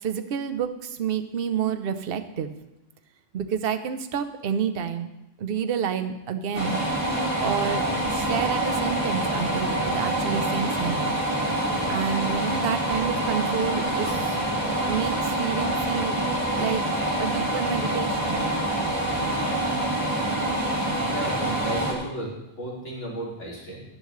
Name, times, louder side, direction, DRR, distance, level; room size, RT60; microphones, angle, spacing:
voice 1, 0.0-2.5 3.3-5.1 5.4-6.8 7.4-11.1 11.9-14.4 14.6-16.2 16.6-16.8 17.2-18.4, right 7 dB, 55° right, 9 dB, 0.9 m, -29 dB
sound 1, 6.5-21.9, right 1 dB, 15° right, 2.2 m, -26 dB
voice 2, 21.0-22.3 22.6-23.8, right 1 dB, 70° left, -4 dB, 3.1 m, -34 dB
12.5 x 10.0 x 3.2 m, 0.91 s
omnidirectional pair, 1.3 m